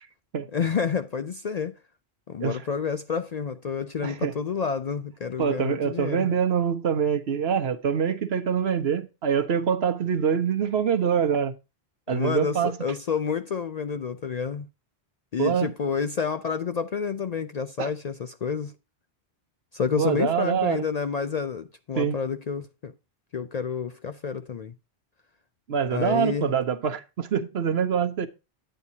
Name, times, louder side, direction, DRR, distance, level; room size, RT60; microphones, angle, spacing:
voice 1, 0.5-1.8 2.3-6.4 12.1-14.7 15.3-18.7 19.7-22.9 23.3-24.7 25.9-26.5, left 6 dB, 50° left, 0.5 m, -29 dB
voice 2, 4.0-4.3 5.4-11.5 12.1-12.8 15.4-15.7 17.8-17.9 20.0-20.8 22.0-22.2 25.7-28.3, right 7 dB, 70° right, 1.2 m, -25 dB
9.6 x 9.0 x 2.8 m
omnidirectional pair, 1.1 m